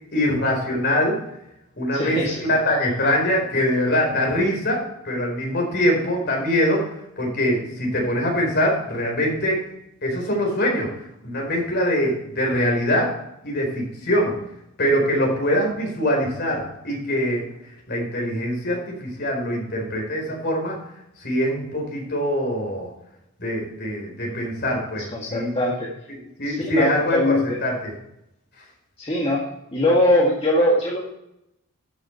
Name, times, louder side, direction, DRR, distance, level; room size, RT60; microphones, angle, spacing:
voice 1, 0.1-1.2 1.8-2.2 2.5-6.9 7.2-9.6 10.0-10.9 11.2-13.1 13.4-14.3 14.8-17.5 17.9-20.8 21.2-22.9 23.4-25.5 26.4-27.9, equal, 50° left, 0 dB, 4.4 m, -23 dB
voice 2, 1.9-2.5 25.1-25.9 26.4-27.6 29.0-29.4 29.7-31.1, left 1 dB, 25° left, -4 dB, 1.7 m, -21 dB
12.5 x 6.7 x 4.4 m, 0.82 s
head